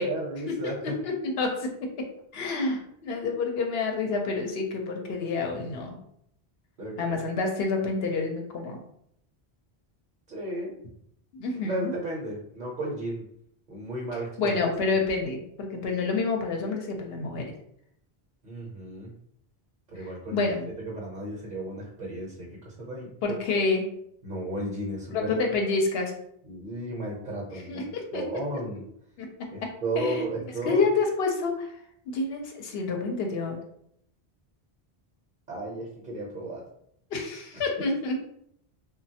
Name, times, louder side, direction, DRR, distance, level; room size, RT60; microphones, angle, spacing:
voice 1, 0.0-0.9 6.8-7.2 10.3-10.7 11.6-13.3 13.7-14.6 18.4-19.1 19.9-20.5 20.8-23.6 24.2-25.4 26.4-27.8 28.1-28.8 29.5-30.9 35.5-36.6, right 1 dB, 55° right, -3 dB, 0.8 m, -34 dB
voice 2, 0.6-6.0 7.0-8.8 11.3-11.9 14.4-17.5 20.0-20.7 23.2-23.9 25.1-26.1 27.7-28.2 29.2-29.3 29.6-29.7 30.0-30.2 30.6-31.7 32.1-33.6 37.1-38.1, left 3 dB, 75° left, 2 dB, 0.8 m, -28 dB
3.1 x 2.2 x 2.7 m, 0.72 s
omnidirectional pair, 1.0 m